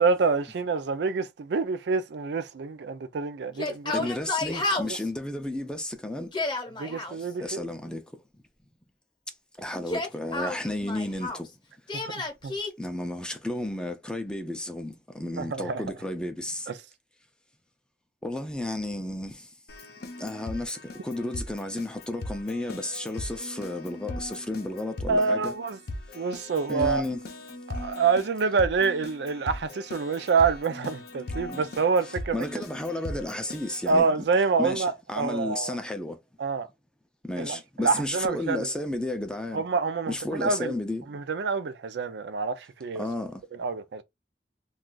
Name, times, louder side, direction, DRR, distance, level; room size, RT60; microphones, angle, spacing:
voice 1, 0.0-4.1 4.5-4.6 4.8-5.0 6.8-7.7 11.9-12.5 15.4-15.8 25.1-25.8 26.1-27.0 27.7-32.4 33.9-35.8 36.4-36.7 37.4-38.7 39.5-40.7 41.1-43.0 43.5-44.0, right 4 dB, 70° right, 0.4 m, -27 dB
Yell, 3.5-5.1 6.2-7.1 9.7-11.5 11.9-12.7, left 2 dB, 25° left, 0.9 m, -31 dB
voice 2, 3.9-6.3 7.1-8.0 9.6-11.5 12.8-16.7 18.2-19.5 20.2-25.5 26.7-27.2 31.5-31.7 32.3-34.1 34.6-36.2 37.2-39.6 40.1-41.0 42.9-43.4, left 1 dB, 5° left, 0.4 m, -32 dB
Keyboard (musical), 19.7-34.0, left 2 dB, 60° left, 0.6 m, -39 dB
2.3 x 2.3 x 3.7 m
head